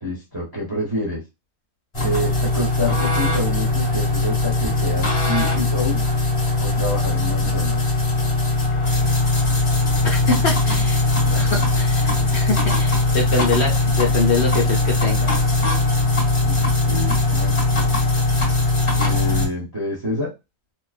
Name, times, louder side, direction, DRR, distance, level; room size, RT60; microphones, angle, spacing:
voice 1, 0.0-1.2 2.0-6.0 6.6-7.8 16.4-17.5 18.9-20.3, left 1 dB, 20° right, -5 dB, 0.6 m, -27 dB
sound 1, 1.9-19.5, left 2 dB, 25° left, 0.9 m, -20 dB
voice 2, 10.0-11.0 11.3-15.3, left 3 dB, 55° left, 0 dB, 1.0 m, -24 dB
2.3 x 2.3 x 2.3 m, 0.24 s
omnidirectional pair, 1.5 m